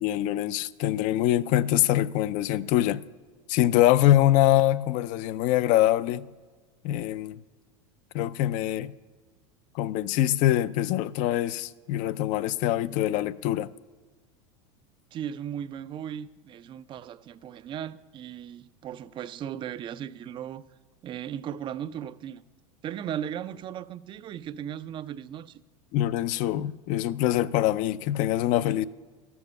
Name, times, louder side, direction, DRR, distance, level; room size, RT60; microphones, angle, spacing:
voice 1, 0.0-3.0 3.5-6.3 6.8-7.4 8.1-8.9 9.7-13.7 25.9-28.8, left 13 dB, 50° left, 0.4 m, -24 dB
voice 2, 15.1-20.7 21.0-22.4 22.8-25.6, right 9 dB, 30° right, 0.4 m, -37 dB
13.0 x 7.1 x 5.5 m
hypercardioid pair, 105°, 17 cm